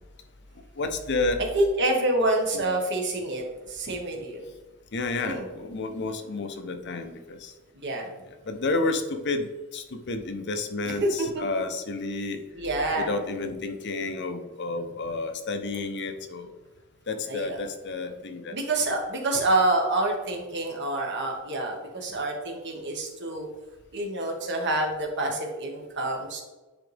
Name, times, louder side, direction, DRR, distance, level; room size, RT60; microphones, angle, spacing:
voice 1, 0.8-1.4 2.5-2.7 4.9-7.5 8.5-12.4 13.0-16.5 17.1-18.6, left 3 dB, 55° left, 7 dB, 0.8 m, -30 dB
voice 2, 1.5-4.5 5.2-5.5 7.8-8.1 10.8-11.4 12.5-13.1 17.3-17.6 18.5-23.5 23.9-26.4, right 2 dB, 55° right, 1 dB, 1.5 m, -27 dB
9.9 x 4.1 x 3.4 m, 1.2 s
head